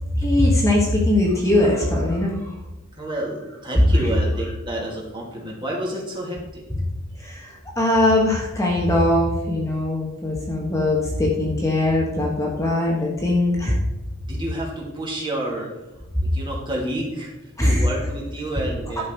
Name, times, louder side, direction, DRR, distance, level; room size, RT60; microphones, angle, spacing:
voice 1, 0.1-2.3 7.2-13.8 17.6-17.8, left 1 dB, 15° left, -3 dB, 1.4 m, -20 dB
voice 2, 3.0-6.6 14.2-15.7 16.2-17.3 17.6-19.1, right 1 dB, 25° right, -3 dB, 2.5 m, -29 dB
11.5 x 6.2 x 4.6 m, 1.0 s
head